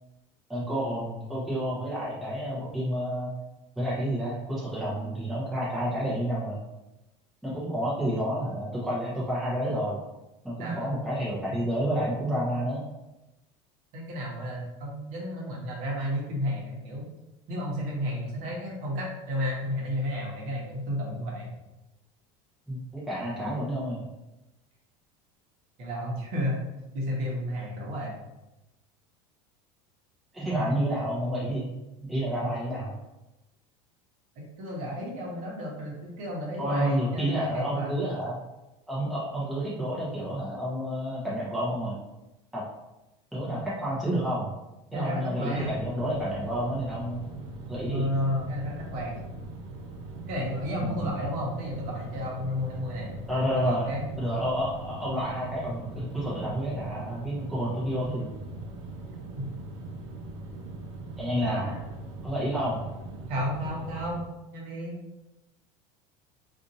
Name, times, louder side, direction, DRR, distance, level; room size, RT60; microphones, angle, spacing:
voice 1, 0.5-3.3 3.8-6.6 7.4-10.0 10.4-12.8 22.7-24.0 30.3-31.7 32.0-32.9 36.6-38.4 38.9-42.0 42.5-42.6 43.3-44.5 44.9-47.2 47.7-48.1 50.8-51.2 53.3-53.9 54.2-58.3 61.2-61.8 62.2-62.8, equal, ahead, -9 dB, 0.7 m, -30 dB
voice 2, 10.6-11.0 13.9-17.1 17.5-21.5 25.8-26.6 26.9-28.2 34.3-38.0 44.9-45.9 47.8-49.2 50.3-53.1 53.6-54.1 59.4-59.5 61.5-61.9 63.3-65.0, equal, 50° right, -2 dB, 1.0 m, -32 dB
sound 1, 45.5-64.2, right 2 dB, 85° right, 0.7 m, -41 dB
2.6 x 2.5 x 4.0 m, 0.97 s
cardioid pair, 175°, 16 cm